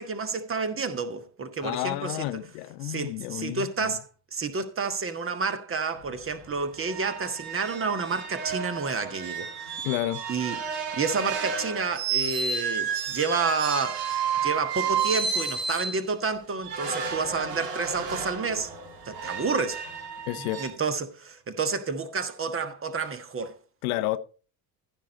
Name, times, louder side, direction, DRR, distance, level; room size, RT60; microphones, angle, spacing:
voice 1, 0.0-2.4 2.8-9.7 10.3-10.6 10.9-14.1 14.4-18.7 19.0-19.8 20.4-23.5, right 4 dB, 25° right, 1.4 m, -30 dB
voice 2, 1.6-3.9 9.8-10.2 20.3-20.6 23.8-24.2, left 16 dB, 60° left, 0.8 m, -30 dB
sound 1, 6.0-6.1 6.4-6.5 6.8-16.0 16.6-20.7, right 6 dB, 70° right, 2.2 m, -31 dB
15.0 x 6.5 x 4.1 m
figure-of-eight pair, 55°, 50 cm